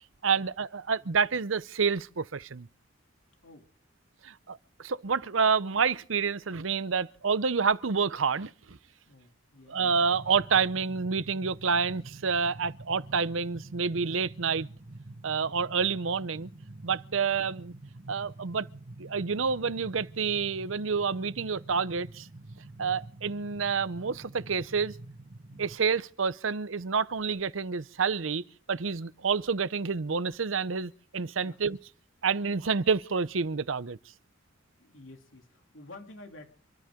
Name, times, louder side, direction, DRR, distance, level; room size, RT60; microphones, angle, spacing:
voice 1, 0.2-2.7 4.2-8.8 9.7-14.7 15.2-16.5 16.8-17.7 18.1-18.7 19.0-22.3 22.8-24.9 25.6-28.4 28.7-31.8 32.2-34.0, right 5 dB, 80° right, 0.7 m, -28 dB
voice 2, 9.1-9.8 12.5-12.7 22.7-22.8 25.5-25.7 31.4-31.6 34.8-36.5, left 2 dB, 80° left, 3.1 m, -51 dB
sound 1, 9.9-25.8, right 2 dB, 45° right, 1.3 m, -47 dB
28.5 x 13.5 x 3.8 m
head